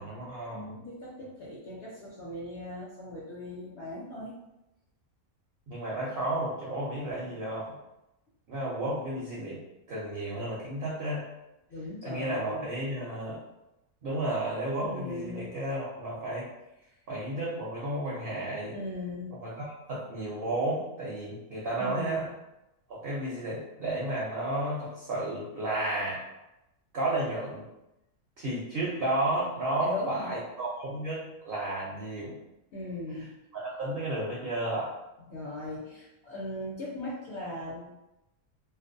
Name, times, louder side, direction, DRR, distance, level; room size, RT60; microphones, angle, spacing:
voice 1, 0.0-0.8 5.7-7.8 8.5-9.6 9.9-11.2 12.0-13.4 14.0-16.5 17.1-18.7 19.3-22.3 22.9-26.2 26.9-27.6 28.4-32.4 33.2-33.3 33.5-35.0, right 1 dB, 60° right, -6 dB, 0.6 m, -32 dB
voice 2, 0.5-4.3 11.7-12.6 14.8-15.5 18.7-19.3 21.8-22.3 29.8-30.3 32.7-33.3 35.3-37.9, left 1 dB, 60° left, -8 dB, 0.8 m, -38 dB
2.5 x 2.1 x 2.5 m, 0.92 s
omnidirectional pair, 1.5 m